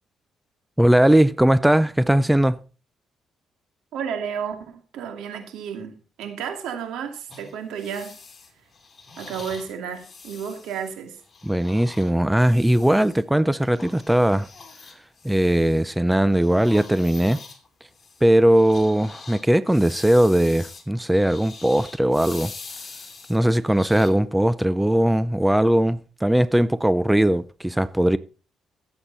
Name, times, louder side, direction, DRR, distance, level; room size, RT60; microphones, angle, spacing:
voice 1, 0.8-2.6 11.4-14.5 15.2-17.4 18.2-22.5 23.3-28.2, right 1 dB, 5° right, 0.5 m, -19 dB
voice 2, 3.9-8.1 9.2-11.2, right 7 dB, 85° right, 2.5 m, -32 dB
sound 1, 7.3-13.2 13.6-16.0 16.3-24.1, left 4 dB, 35° left, 2.9 m, -44 dB
16.0 x 8.0 x 4.0 m
cardioid pair, 90°, 0 cm